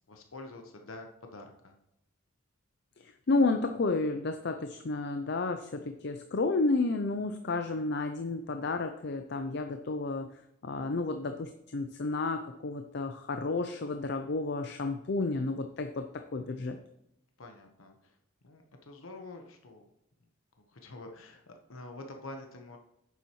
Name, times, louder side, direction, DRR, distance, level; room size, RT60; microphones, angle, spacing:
voice 1, 0.1-1.7 17.4-18.1 18.4-19.8 20.7-22.8, left 2 dB, 85° left, 3 dB, 1.1 m, -47 dB
voice 2, 3.0-10.3 10.6-16.8, left 3 dB, 55° left, 7 dB, 0.5 m, -31 dB
9.2 x 7.2 x 3.1 m, 0.81 s
head